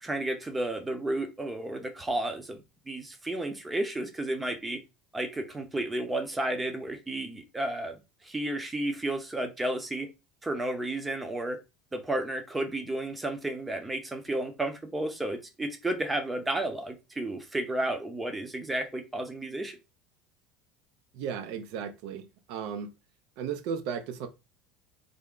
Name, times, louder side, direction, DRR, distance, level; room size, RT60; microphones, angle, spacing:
voice 1, 0.0-2.6 2.9-4.8 5.1-8.0 8.2-10.1 10.4-11.6 11.9-19.8, right 1 dB, 10° right, 0.7 m, -32 dB
voice 2, 21.1-22.9 23.4-24.3, right 7 dB, 70° right, 0.5 m, -35 dB
3.4 x 2.1 x 3.7 m
supercardioid pair, 130°, 0 cm